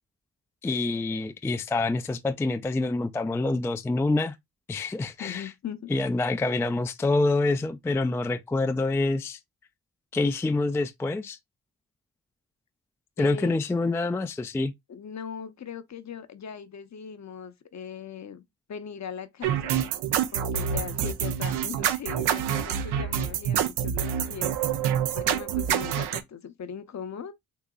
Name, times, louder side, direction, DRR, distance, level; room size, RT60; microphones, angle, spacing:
voice 1, 0.6-4.4 4.7-5.5 5.9-9.4 10.1-11.4 13.2-14.7, left 2 dB, 5° left, 0.3 m, -26 dB
voice 2, 5.2-5.9 13.2-13.5 14.9-18.4 18.7-19.8 20.3-24.6 25.1-27.3, left 7 dB, 45° left, 0.7 m, -39 dB
sound 1, 19.4-26.2, right 9 dB, 80° right, 0.6 m, -27 dB
3.8 x 2.8 x 2.2 m
supercardioid pair, 50°, 39 cm